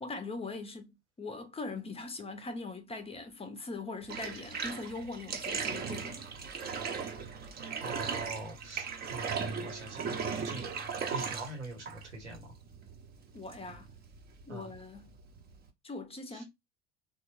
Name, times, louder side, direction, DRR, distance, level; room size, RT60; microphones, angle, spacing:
voice 1, 0.0-6.3 13.3-13.9 14.5-15.1 15.8-16.4, left 3 dB, 15° left, 0.7 m, -41 dB
Bathtub (filling or washing), 4.0-15.7, right 5 dB, 30° right, 0.7 m, -38 dB
voice 2, 7.8-10.7 11.1-12.5 14.5-14.7 16.3-16.4, right 2 dB, 85° right, 0.9 m, -43 dB
3.4 x 2.1 x 3.0 m
figure-of-eight pair, 65°, 34 cm